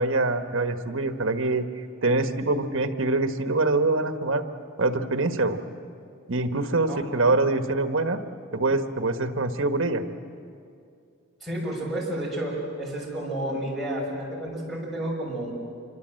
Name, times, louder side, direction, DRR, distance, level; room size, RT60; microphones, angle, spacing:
voice 1, 0.0-1.7 2.0-4.5 4.8-5.6 6.3-8.2 8.5-10.0, right 2 dB, 65° right, 7 dB, 1.3 m, -24 dB
voice 2, 11.4-15.5, right 1 dB, ahead, -4 dB, 6.5 m, -31 dB
27.0 x 24.0 x 7.8 m, 2.4 s
head